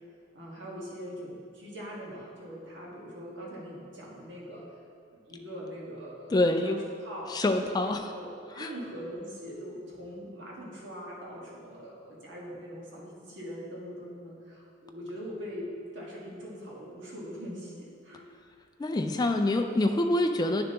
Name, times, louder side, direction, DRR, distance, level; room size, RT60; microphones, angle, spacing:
voice 1, 0.3-4.6 5.1-7.3 7.8-15.7 15.9-18.3, equal, 65° right, -5 dB, 1.7 m, -42 dB
voice 2, 6.3-6.9 7.3-8.1 8.6-8.7 18.8-20.6, left 1 dB, 20° left, 5 dB, 0.3 m, -26 dB
9.7 x 6.7 x 2.9 m, 2.3 s
head